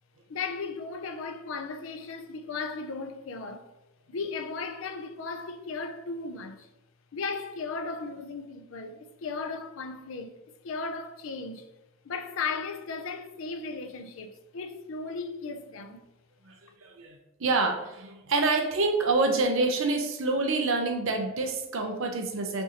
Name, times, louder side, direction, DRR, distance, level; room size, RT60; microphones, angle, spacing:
voice 1, 0.3-3.7 4.1-6.7 7.1-10.4 10.6-11.7 12.0-16.0, left 4 dB, 65° left, 0.4 m, -36 dB
voice 2, 16.8-22.6, right 3 dB, 60° right, 0.6 m, -27 dB
5.9 x 2.6 x 2.8 m
head